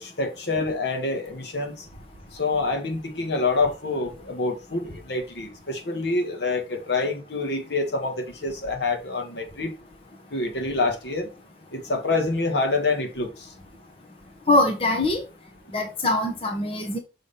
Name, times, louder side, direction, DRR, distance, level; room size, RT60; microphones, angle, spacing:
voice 1, 0.0-1.7 2.3-9.7 10.3-11.3 11.7-13.3, left 3 dB, 65° left, 1.5 m, -26 dB
voice 2, 14.5-15.2 15.7-17.0, left 2 dB, 30° left, 1.1 m, -22 dB
6.2 x 3.4 x 5.6 m
head